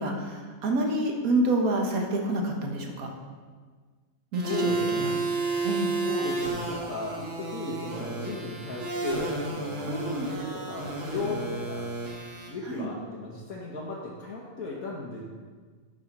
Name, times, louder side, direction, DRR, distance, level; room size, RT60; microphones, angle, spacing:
voice 1, 0.0-3.1 4.3-5.1 5.6-6.0 9.9-10.3 12.6-12.9, right 1 dB, 85° right, 2 dB, 1.6 m, -28 dB
sound 1, 4.3-12.5, right 3 dB, 65° right, 1.7 m, -32 dB
voice 2, 4.4-5.1 6.0-11.9 12.5-15.2, left 3 dB, 85° left, -5 dB, 1.6 m, -36 dB
8.9 x 4.9 x 5.9 m, 1.5 s
omnidirectional pair, 1.5 m